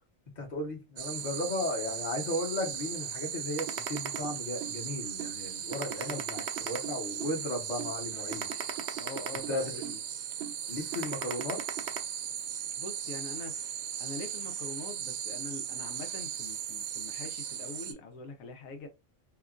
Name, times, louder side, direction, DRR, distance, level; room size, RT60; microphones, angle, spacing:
voice 1, 0.4-8.7 9.5-9.7 10.7-11.6, left 2 dB, 35° left, 0.9 m, -35 dB
sound 1, 1.0-17.9, right 9 dB, 85° right, 1.0 m, -38 dB
sound 2, 3.6-4.8 5.2-5.3 5.7-7.4 7.8-7.9 8.3-10.0 10.4-10.6 10.9-12.0, right 9 dB, 65° right, 0.8 m, -37 dB
voice 2, 5.8-6.2 9.0-10.0 12.8-18.9, left 3 dB, 85° left, 1.0 m, -44 dB
2.8 x 2.3 x 2.3 m
omnidirectional pair, 1.4 m